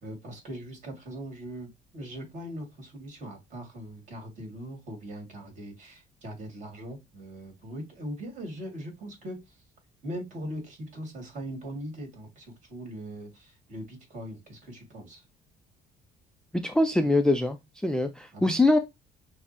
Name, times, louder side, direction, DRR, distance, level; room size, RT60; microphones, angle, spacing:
voice 1, 0.0-9.6 10.0-15.2 18.3-18.6, equal, 45° right, 2.2 m, -40 dB
voice 2, 16.5-18.8, left 2 dB, 5° left, 0.4 m, -23 dB
6.2 x 2.1 x 2.9 m
cardioid pair, 110°, 17 cm